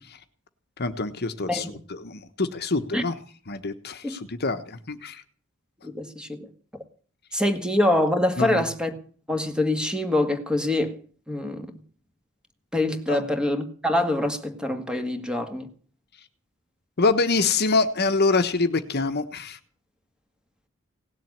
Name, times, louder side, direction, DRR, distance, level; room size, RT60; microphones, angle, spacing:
voice 1, 0.8-3.2 3.5-5.2 8.4-8.6 13.1-13.2 17.0-19.6, left 3 dB, 50° left, 1.2 m, -25 dB
voice 2, 5.8-6.5 7.3-8.9 9.3-11.0 11.3-11.7 12.7-15.7, left 1 dB, 5° right, 1.9 m, -25 dB
18.0 x 7.6 x 9.9 m
head